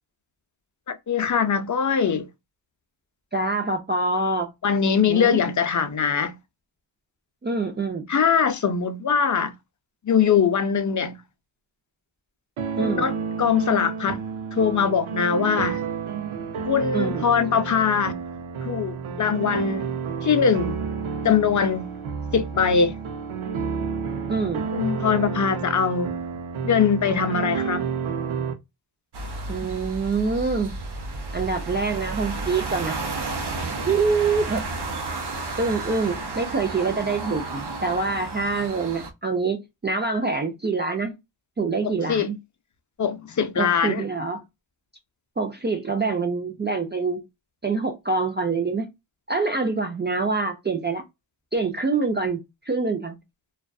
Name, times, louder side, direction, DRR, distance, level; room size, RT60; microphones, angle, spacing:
voice 1, 0.9-2.3 4.6-6.4 8.1-9.5 10.0-11.2 12.8-14.2 14.5-15.8 16.6-18.1 18.6-20.0 20.2-20.8 21.2-21.9 22.3-22.9 24.7-26.1 26.6-27.9 41.8-42.3 43.0-44.0, left 6 dB, 40° left, 0.5 m, -22 dB
voice 2, 3.3-4.5 5.1-5.4 7.4-8.1 12.8-13.1 16.9-17.2 24.3-24.7 29.5-30.7 31.3-33.0 33.9-34.6 35.6-41.1 41.6-42.4 43.6-44.4 45.4-47.2 47.6-48.9 49.3-51.0 51.5-53.2, right 4 dB, 25° right, 0.4 m, -25 dB
sound 1, 12.6-28.5, right 6 dB, 85° right, 0.6 m, -30 dB
sound 2, 29.1-39.1, right 3 dB, 55° right, 0.7 m, -32 dB
2.4 x 2.3 x 2.3 m
cardioid pair, 65°, 47 cm